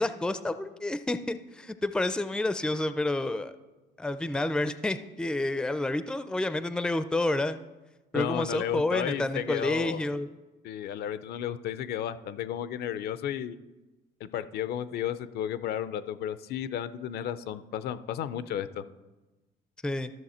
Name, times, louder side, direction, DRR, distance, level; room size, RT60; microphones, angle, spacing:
voice 1, 0.0-3.5 4.0-7.6 8.1-10.3 19.8-20.1, left 2 dB, 5° left, 12 dB, 0.4 m, -29 dB
voice 2, 8.1-10.1 10.6-13.6 14.2-18.8, left 10 dB, 70° left, 14 dB, 0.5 m, -33 dB
14.0 x 6.4 x 4.3 m, 1.1 s
cardioid pair, 110°, 17 cm